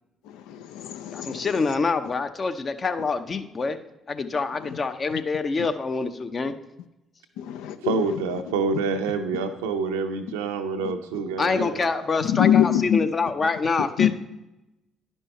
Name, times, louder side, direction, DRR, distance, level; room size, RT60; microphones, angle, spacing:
voice 1, 0.2-1.8 4.6-4.8 7.4-8.2 10.8-10.9 11.6-11.7 12.3-13.0 14.0-14.1, left 10 dB, 75° left, 11 dB, 0.4 m, -24 dB
voice 2, 1.1-3.8 4.1-6.5 11.4-14.1, left 4 dB, 40° left, 8 dB, 0.7 m, -26 dB
voice 3, 7.8-11.8, right 4 dB, 85° right, 7 dB, 0.6 m, -27 dB
10.5 x 5.4 x 4.1 m, 0.94 s
hypercardioid pair, 50°, 0 cm